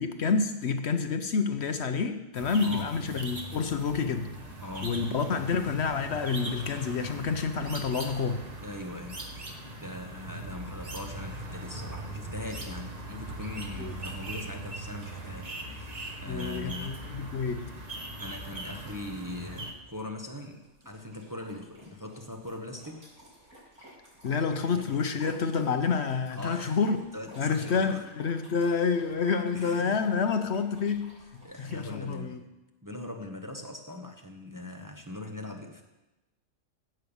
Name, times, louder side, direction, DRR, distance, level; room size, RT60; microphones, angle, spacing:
voice 1, 0.0-4.3 4.8-8.5 13.7-13.9 16.3-17.7 24.2-27.0 27.4-32.4, left 5 dB, 65° left, 8 dB, 1.0 m, -28 dB
sound 1, 2.3-19.7, right 1 dB, 35° right, 1.3 m, -40 dB
voice 2, 2.6-3.0 4.6-5.5 8.6-9.3 9.8-17.1 18.2-23.1 24.6-24.9 26.3-26.8 27.1-28.0 29.5-30.0 31.4-32.5 32.8-35.8, left 2 dB, 15° right, 3 dB, 0.9 m, -41 dB
sound 2, 13.2-31.9, right 1 dB, 80° right, 5.4 m, -55 dB
15.5 x 5.5 x 7.1 m, 1.0 s
omnidirectional pair, 1.3 m